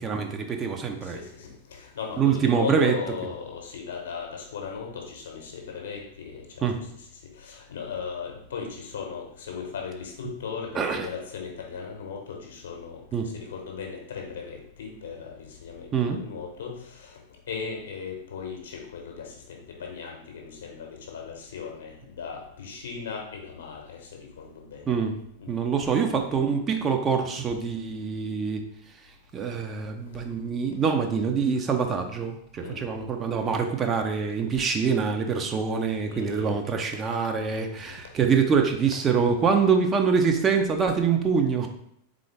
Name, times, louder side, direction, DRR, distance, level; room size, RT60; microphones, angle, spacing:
voice 1, 0.0-1.2 2.2-2.9 6.6-6.8 10.7-11.1 13.1-13.3 15.9-16.2 24.9-25.1 25.5-28.6 29.3-41.7, right 6 dB, 25° right, 4 dB, 0.5 m, -25 dB
voice 2, 1.0-6.7 6.9-7.0 7.4-17.2 17.5-25.0 25.4-25.5 32.6-32.8 35.4-35.5 36.1-36.5 37.8-37.9, left 6 dB, 60° left, 2 dB, 0.9 m, -37 dB
3.8 x 3.8 x 3.3 m, 0.71 s
figure-of-eight pair, 90°, 0 cm